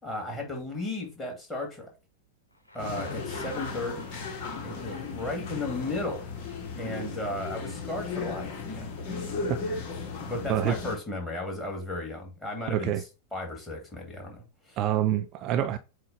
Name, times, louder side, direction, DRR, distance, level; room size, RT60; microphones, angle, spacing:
voice 1, 0.0-1.9 2.7-4.1 4.6-6.3 6.8-8.9 10.2-14.8, left 2 dB, 10° left, 2.7 m, -35 dB
Thunder, 2.5-6.5, left 1 dB, 80° left, 1.1 m, -48 dB
sound 1, 2.8-11.0, left 4 dB, 40° left, 1.7 m, -36 dB
voice 2, 12.7-13.0 14.8-15.8, right 11 dB, 35° right, 0.5 m, -26 dB
7.7 x 2.6 x 5.3 m
figure-of-eight pair, 90°, 0 cm